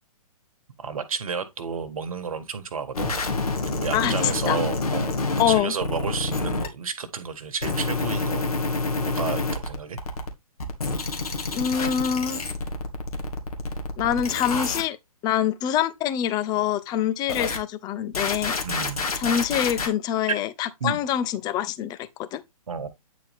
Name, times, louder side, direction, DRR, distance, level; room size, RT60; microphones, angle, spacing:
voice 1, 0.8-3.3 3.6-5.2 5.5-8.5 8.9-10.0 18.6-19.0 20.8-21.0 22.7-22.9, right 5 dB, 65° right, 1.6 m, -31 dB
sound 1, 2.9-6.7 7.6-10.3 10.6-14.8 17.3-17.6 18.1-19.9, left 3 dB, 70° left, 2.2 m, -28 dB
voice 2, 5.4-5.7 11.5-12.4 14.0-15.0 15.2-18.6 19.2-22.4, left 9 dB, 20° left, 0.8 m, -25 dB
9.6 x 4.4 x 3.5 m
figure-of-eight pair, 125°, 19 cm